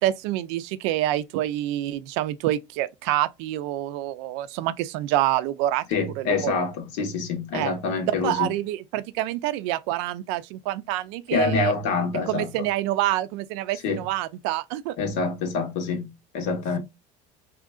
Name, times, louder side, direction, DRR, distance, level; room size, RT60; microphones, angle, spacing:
voice 1, 0.0-5.9 6.2-6.7 7.5-7.7 8.1-11.7 12.3-15.0, right 14 dB, 75° right, 0.4 m, -27 dB
voice 2, 5.9-8.5 11.3-12.7 13.8-14.0 15.0-16.8, left 4 dB, 80° left, 1.2 m, -26 dB
3.6 x 2.8 x 2.3 m
cardioid pair, 175°, 15 cm